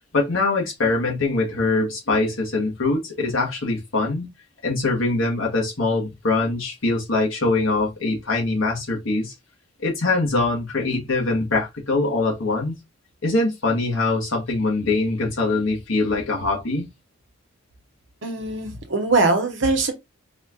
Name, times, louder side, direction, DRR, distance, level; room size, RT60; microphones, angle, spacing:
voice 1, 0.1-4.3 4.6-9.3 9.8-12.7 13.2-16.9, left 3 dB, 65° left, 1.5 m, -23 dB
voice 2, 18.2-19.9, right 3 dB, 60° right, 1.0 m, -21 dB
4.3 x 2.5 x 2.9 m
head